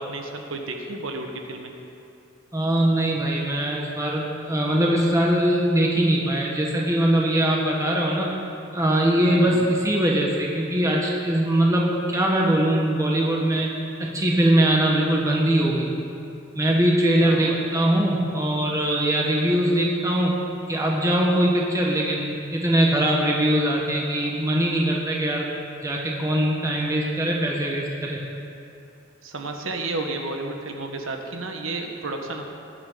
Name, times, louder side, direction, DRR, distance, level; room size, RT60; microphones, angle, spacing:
voice 1, 0.0-1.7 9.3-9.6 17.2-17.6 29.2-32.4, right 2 dB, 90° right, 3 dB, 1.4 m, -32 dB
voice 2, 2.5-8.3 8.7-13.7 14.0-16.0 16.5-20.4 20.7-25.5 25.8-28.2, right 1 dB, 15° right, -2 dB, 1.4 m, -22 dB
20.0 x 9.9 x 4.0 m, 2.6 s
head